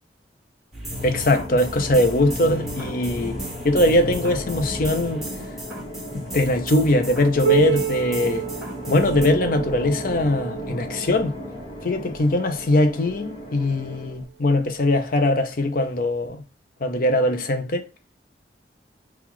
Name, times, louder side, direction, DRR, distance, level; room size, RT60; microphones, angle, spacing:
sound 1, 0.7-9.3, equal, ahead, 1.2 m, -35 dB
sound 2, 0.9-14.2, equal, 30° left, 1.1 m, -35 dB
voice 1, 1.0-3.4 3.6-5.2 6.1-8.5 8.9-11.3 11.8-16.4 16.8-17.8, left 1 dB, 50° left, 0.6 m, -21 dB
Piano, 7.4-12.8 13.6-13.7 14.2-14.3 15.1-15.2 16.2-16.3, right 11 dB, 60° right, 1.1 m, -28 dB
3.8 x 2.4 x 4.5 m
head